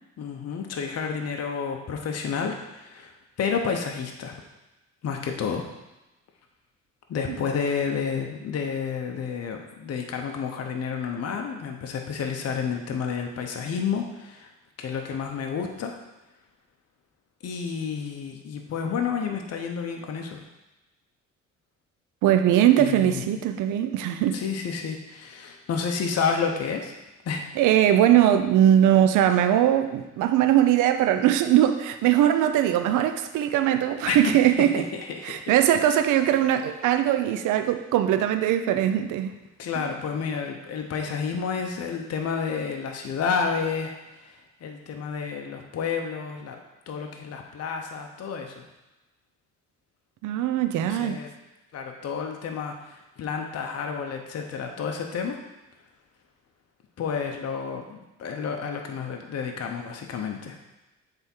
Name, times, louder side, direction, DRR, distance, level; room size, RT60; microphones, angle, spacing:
voice 1, 0.2-3.1 3.4-4.3 5.0-5.7 7.1-14.5 14.8-16.0 17.4-20.4 22.8-23.3 24.3-26.9 27.2-27.4 34.1-34.3 34.9-35.5 39.6-46.6 46.9-48.6 50.8-51.3 51.7-55.4 57.0-60.6, left 6 dB, 55° left, 3 dB, 0.9 m, -30 dB
voice 2, 22.2-24.4 27.6-34.9 35.2-39.4 50.2-51.2, right 11 dB, 85° right, 8 dB, 0.5 m, -21 dB
7.7 x 3.6 x 4.5 m, 1.0 s
cardioid pair, 90°, 30 cm